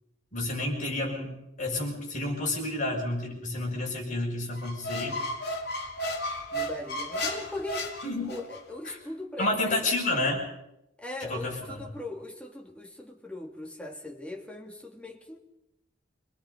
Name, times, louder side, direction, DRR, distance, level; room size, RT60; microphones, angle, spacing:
voice 1, 0.3-5.2 8.0-8.3 8.9-9.0 9.4-10.5 11.2-11.8, left 2 dB, 40° left, -1 dB, 6.4 m, -30 dB
Squeak, 4.6-8.6, equal, 55° left, 3.0 m, -34 dB
voice 2, 6.5-7.9 8.3-9.8 11.0-15.4, left 2 dB, 5° left, 0 dB, 2.7 m, -39 dB
26.5 x 20.0 x 5.3 m, 0.86 s
head